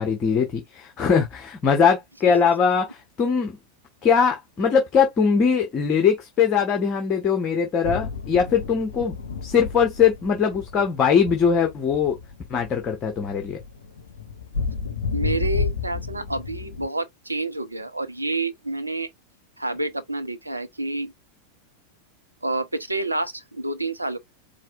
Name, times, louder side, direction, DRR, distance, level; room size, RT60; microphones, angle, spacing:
voice 1, 0.0-3.5 4.0-9.2 9.4-12.2 12.5-13.6, left 6 dB, 25° left, 1.2 m, -21 dB
sound 1, 7.8-16.9, left 5 dB, 65° left, 0.7 m, -32 dB
voice 2, 15.1-19.1 19.6-21.1 22.4-24.2, right 2 dB, 85° right, 0.6 m, -28 dB
4.8 x 3.5 x 2.4 m
figure-of-eight pair, 90°, 0 cm